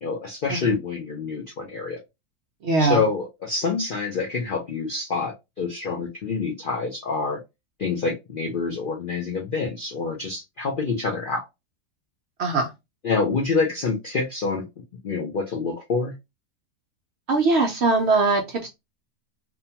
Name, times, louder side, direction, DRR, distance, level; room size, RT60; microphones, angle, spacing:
voice 1, 0.0-2.0 2.8-7.4 7.8-11.4 13.0-14.7 15.0-16.1, left 4 dB, 65° left, 0 dB, 0.5 m, -27 dB
voice 2, 2.6-3.0 12.4-12.7 17.3-18.7, right 3 dB, 65° right, 2 dB, 0.7 m, -21 dB
2.7 x 2.1 x 2.7 m, 0.22 s
omnidirectional pair, 1.5 m